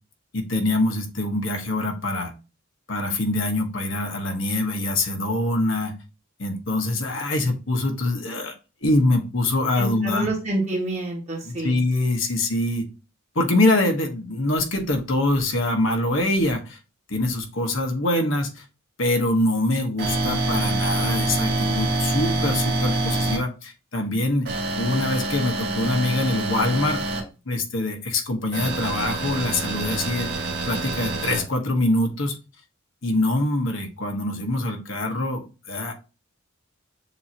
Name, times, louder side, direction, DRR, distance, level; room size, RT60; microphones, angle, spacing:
voice 1, 0.3-2.3 2.9-5.9 6.4-8.5 8.8-10.3 11.4-12.8 13.3-16.8 17.1-18.6 19.0-24.5 24.8-27.2 27.5-30.3 30.7-32.4 33.0-35.9, left 2 dB, 65° left, 4 dB, 1.1 m, -24 dB
voice 2, 9.7-11.8, right 1 dB, 35° right, -3 dB, 1.6 m, -28 dB
sound 1, 20.0-23.4 24.4-27.2 28.5-31.4, right 2 dB, 55° right, 1.4 m, -26 dB
7.0 x 2.7 x 2.8 m, 0.31 s
head